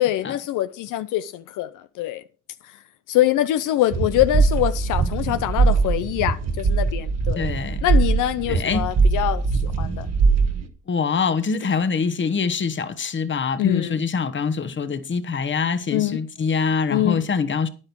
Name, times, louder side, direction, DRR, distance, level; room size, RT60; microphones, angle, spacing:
voice 1, 0.0-2.2 3.1-7.5 7.8-10.1 13.6-14.0 15.9-16.2 16.9-17.2, left 14 dB, 85° left, 0.6 m, -24 dB
sound 1, 3.9-10.7, right 4 dB, 60° right, 1.4 m, -21 dB
voice 2, 7.4-7.8 8.5-8.9 10.9-17.7, left 5 dB, 40° left, 1.2 m, -24 dB
10.0 x 8.8 x 4.6 m
cardioid pair, 90°, 30 cm